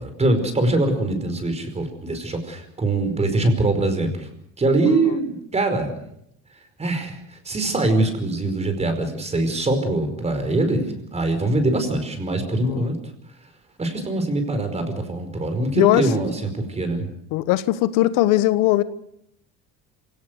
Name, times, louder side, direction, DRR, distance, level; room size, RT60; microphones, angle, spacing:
voice 1, 0.0-4.3 4.6-6.0 6.8-7.2 7.4-13.0 13.8-17.1, right 2 dB, 20° right, 8 dB, 5.0 m, -23 dB
voice 2, 4.9-5.2 12.6-12.9 15.8-16.1 17.3-18.8, left 15 dB, 80° left, 14 dB, 1.2 m, -20 dB
27.0 x 17.5 x 6.7 m, 0.74 s
cardioid pair, 130°, 32 cm